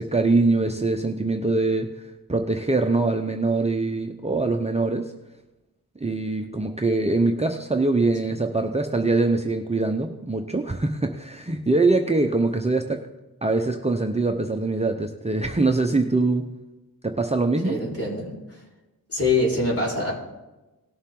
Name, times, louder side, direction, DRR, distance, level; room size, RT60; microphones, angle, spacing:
voice 1, 0.0-5.1 6.0-13.0 13.4-16.5 17.0-17.8, right 3 dB, 20° right, 3 dB, 0.7 m, -23 dB
voice 2, 17.6-18.6 19.1-20.1, left 2 dB, 40° left, -4 dB, 4.4 m, -25 dB
18.0 x 7.2 x 3.8 m, 1.0 s
wide cardioid pair, 95°, 36 cm